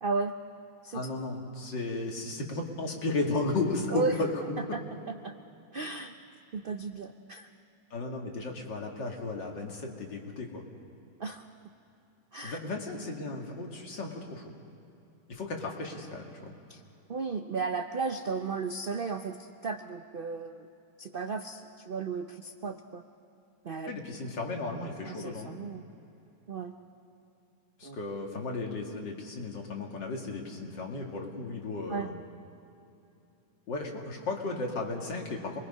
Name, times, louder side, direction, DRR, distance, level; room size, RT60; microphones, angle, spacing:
voice 1, 0.0-0.4 0.8-1.1 3.9-4.2 4.7-4.8 5.1-5.3 5.7-6.1 6.5-7.5 11.2-11.5 12.3-12.6 16.7-16.8 17.1-20.7 21.0-23.0 23.6-23.9 25.1-25.8 26.5-26.7 27.8-28.0 31.9-32.1, right 4 dB, 85° right, 7 dB, 0.4 m, -34 dB
voice 2, 0.9-4.6 7.9-10.6 12.4-14.5 15.3-16.5 23.9-25.6 27.8-32.2 33.7-35.6, left 3 dB, 75° left, 1 dB, 2.7 m, -34 dB
27.5 x 21.5 x 5.5 m, 2.8 s
omnidirectional pair, 2.0 m